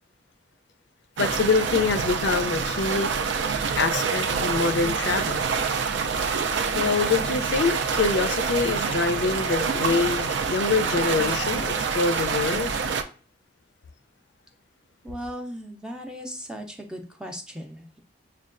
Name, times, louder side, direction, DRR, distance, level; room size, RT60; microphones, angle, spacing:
voice 1, 1.2-3.1 3.8-5.4 6.7-12.7, left 4 dB, 70° left, 0.4 m, -25 dB
sound 1, 1.2-13.0, right 5 dB, 80° right, 0.4 m, -26 dB
voice 2, 15.0-18.0, equal, 5° right, 0.4 m, -37 dB
6.2 x 2.2 x 2.4 m
head